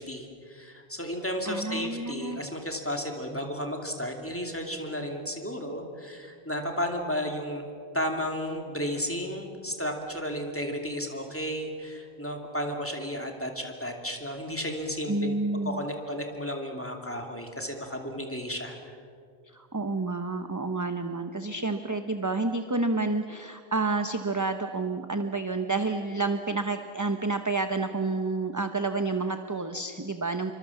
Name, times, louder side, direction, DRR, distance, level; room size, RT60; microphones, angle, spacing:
voice 1, 0.0-7.7 7.9-15.4 15.6-19.0, equal, 10° left, 2 dB, 2.7 m, -33 dB
voice 2, 1.5-2.4 15.1-15.8 19.5-30.5, right 3 dB, 20° right, 7 dB, 0.9 m, -29 dB
27.5 x 24.5 x 7.2 m, 2.3 s
omnidirectional pair, 1.1 m